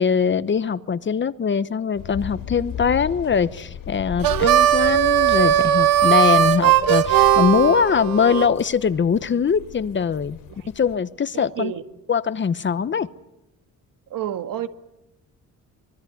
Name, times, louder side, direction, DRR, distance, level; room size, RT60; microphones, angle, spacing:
voice 1, 0.0-10.4 10.8-11.7 12.1-13.1, left 6 dB, 35° left, 1.0 m, -22 dB
sound 1, 1.9-10.9, left 8 dB, 85° left, 5.5 m, -37 dB
Harmonica, 4.2-8.5, right 12 dB, 90° right, 1.7 m, -18 dB
voice 2, 11.3-11.8 14.1-14.7, right 11 dB, 75° right, 1.7 m, -29 dB
25.0 x 23.0 x 9.4 m
cardioid pair, 125°, 34 cm